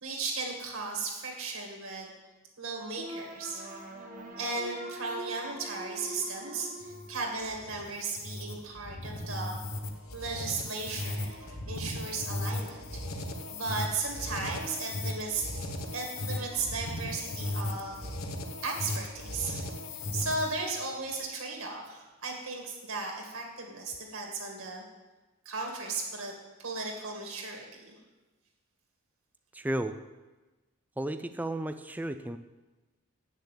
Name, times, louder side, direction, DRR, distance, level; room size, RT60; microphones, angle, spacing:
voice 1, 0.0-2.1 2.6-3.7 4.4-9.6 10.1-15.7 15.9-18.0 18.6-24.8 25.5-26.3 26.6-27.9, right 3 dB, 75° right, 0 dB, 2.1 m, -36 dB
sound 1, 3.0-8.0, right 1 dB, 35° right, 1.1 m, -43 dB
sound 2, 6.8-20.7, left 1 dB, 75° left, 1.1 m, -37 dB
voice 2, 29.5-30.0 31.0-32.4, right 1 dB, 5° right, 9 dB, 0.3 m, -33 dB
8.4 x 6.8 x 8.2 m, 1.2 s
head